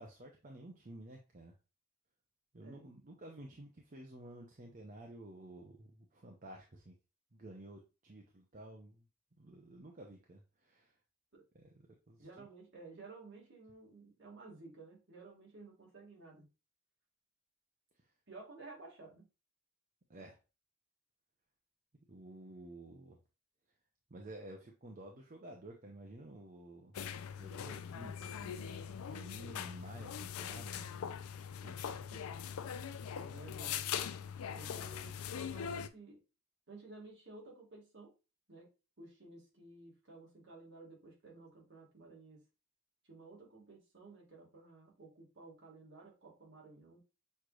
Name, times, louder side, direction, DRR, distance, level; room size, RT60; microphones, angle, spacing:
voice 1, 0.0-1.5 2.5-6.9 7.3-9.1 9.4-11.0 11.5-11.7 12.1-12.3 20.1-20.4 22.1-23.2 24.1-26.9 27.4-30.9 31.6-32.0, right 1 dB, 35° right, 1 dB, 0.6 m, -52 dB
voice 2, 12.2-16.5 18.3-19.3 32.1-32.2 33.1-34.1 34.5-36.2 36.7-38.1 38.5-38.7 39.0-42.4 43.1-47.0, right 3 dB, 55° right, -2 dB, 1.9 m, -54 dB
sound 1, 26.9-35.9, left 8 dB, 90° left, 0.4 m, -42 dB
6.5 x 3.1 x 2.4 m, 0.30 s
head